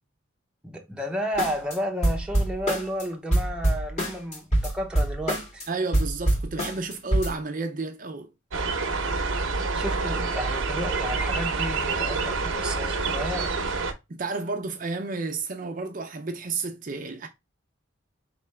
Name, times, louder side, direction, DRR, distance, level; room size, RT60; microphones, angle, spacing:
voice 1, 0.6-5.6 9.4-13.8, equal, 5° right, 0.7 m, -32 dB
Hiphop drums, 1.4-1.8 2.0-3.0 3.3-5.6 5.9-7.3, right 1 dB, 35° left, 1.8 m, -24 dB
voice 2, 5.7-8.3 14.1-17.3, right 3 dB, 40° right, 0.5 m, -31 dB
sound 1, 8.5-13.9, right 4 dB, 75° right, 0.8 m, -27 dB
4.4 x 3.3 x 3.2 m
head